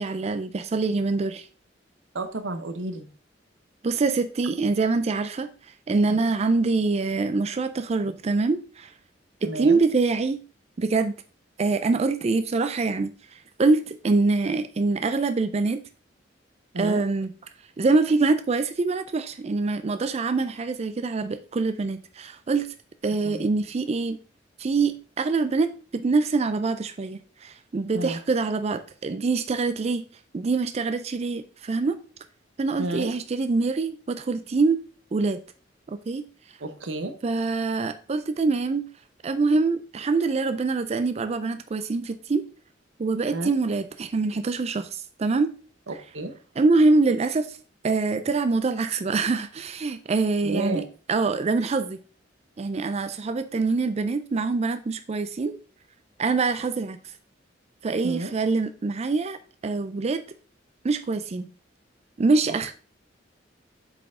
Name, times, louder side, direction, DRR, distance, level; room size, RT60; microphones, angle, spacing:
voice 1, 0.0-1.5 3.8-8.9 9.4-10.4 10.8-11.1 11.6-15.8 16.8-17.3 17.8-22.7 23.0-24.2 24.6-30.0 30.3-32.0 32.6-34.8 35.1-35.4 35.9-36.3 37.2-38.8 39.2-42.4 43.0-45.5 46.6-47.6 47.8-52.0 52.6-55.6 56.2-57.1 57.8-59.4 59.6-60.2 60.8-61.5 62.2-62.7, right 3 dB, 35° right, 0.4 m, -24 dB
voice 2, 2.1-3.1 9.4-9.8 16.7-17.0 23.2-23.4 27.9-28.2 32.8-33.1 36.6-37.1 43.3-43.5 45.9-46.3 50.4-50.8 58.0-58.3 62.5-62.7, right 2 dB, 90° right, 1.0 m, -31 dB
7.7 x 4.7 x 3.6 m
head